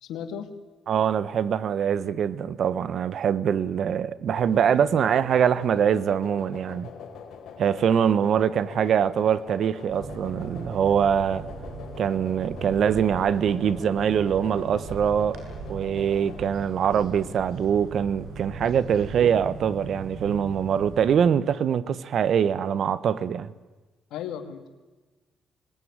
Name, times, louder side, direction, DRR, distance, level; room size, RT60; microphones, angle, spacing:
voice 1, 0.0-0.5 4.7-4.8 24.1-24.7, left 8 dB, 90° left, 2.4 m, -35 dB
voice 2, 0.9-6.9 7.6-11.5 12.0-15.4 15.7-23.5, right 8 dB, 65° right, 1.2 m, -23 dB
sound 1, 4.3-16.5, left 6 dB, 70° left, 4.6 m, -44 dB
sound 2, 9.9-21.1, right 3 dB, 85° right, 7.3 m, -39 dB
25.0 x 20.5 x 9.7 m
cardioid pair, 90°, 0 cm